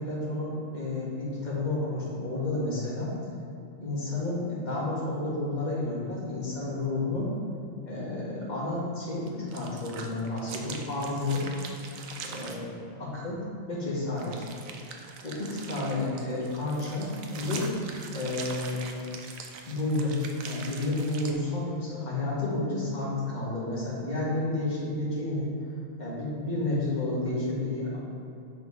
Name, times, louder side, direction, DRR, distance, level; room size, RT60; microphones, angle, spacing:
voice 1, 0.0-3.1 3.8-7.3 7.8-11.5 12.2-13.4 13.7-14.4 15.2-17.7 18.1-18.8 19.7-20.2 20.5-25.5 26.0-28.0, left 2 dB, 35° left, -7 dB, 2.0 m, -31 dB
sound 1, 9.3-12.6 14.2-21.3, right 5 dB, 85° right, 1.1 m, -42 dB
9.4 x 3.9 x 4.9 m, 2.6 s
omnidirectional pair, 1.4 m